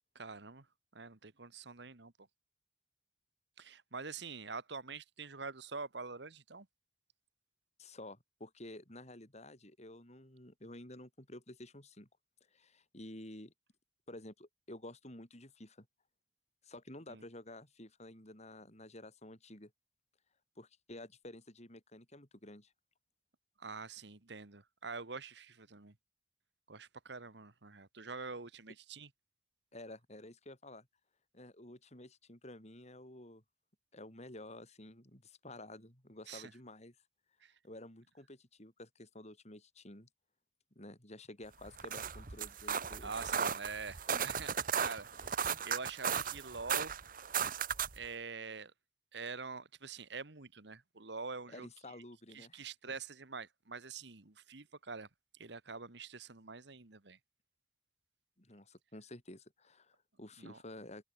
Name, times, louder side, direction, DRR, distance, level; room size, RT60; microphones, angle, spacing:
voice 1, 0.1-0.7 0.9-2.1 3.6-6.7 17.1-17.2 23.6-25.9 26.7-29.1 36.3-36.5 37.4-37.5 43.0-44.5 44.8-45.4 45.6-46.9 47.9-48.7 49.1-51.7 52.3-55.1 55.3-57.2 60.4-60.6, right 4 dB, 65° right, 1.6 m, -45 dB
voice 2, 7.8-12.1 12.5-13.5 14.1-15.9 16.6-19.7 20.6-22.7 29.7-30.9 31.3-33.4 33.9-37.0 37.6-40.1 40.8-43.1 44.1-44.3 45.2-45.7 51.5-53.0 58.4-61.0, left 1 dB, 35° left, 5.5 m, -51 dB
sound 1, 41.6-48.1, right 7 dB, 50° right, 1.4 m, -36 dB
head